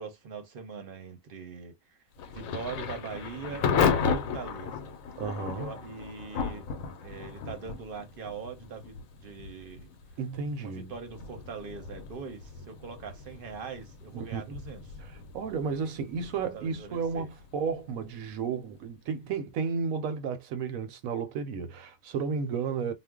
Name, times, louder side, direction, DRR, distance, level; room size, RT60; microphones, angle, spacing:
voice 1, 0.0-2.0 2.3-4.9 5.5-6.7 7.0-9.9 10.6-14.8 16.2-17.3, right 5 dB, 50° right, 0.8 m, -42 dB
Thunder / Rain, 2.2-18.9, left 6 dB, 80° left, 1.0 m, -35 dB
voice 2, 5.2-5.7 10.2-10.9 14.1-14.6 15.0-22.9, right 5 dB, 80° right, 1.0 m, -33 dB
2.4 x 2.1 x 3.5 m
omnidirectional pair, 1.5 m